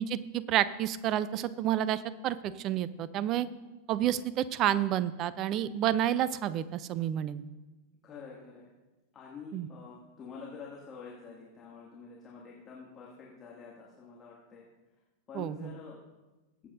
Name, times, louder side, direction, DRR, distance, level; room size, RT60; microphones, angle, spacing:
voice 1, 0.0-3.5 3.9-7.4 9.5-9.7 15.3-15.7, right 11 dB, 35° right, 17 dB, 0.5 m, -30 dB
voice 2, 8.0-8.7 9.1-14.6 15.3-16.0, left 5 dB, 25° left, -4 dB, 2.2 m, -47 dB
22.0 x 8.5 x 2.6 m, 1.1 s
figure-of-eight pair, 90°, 0 cm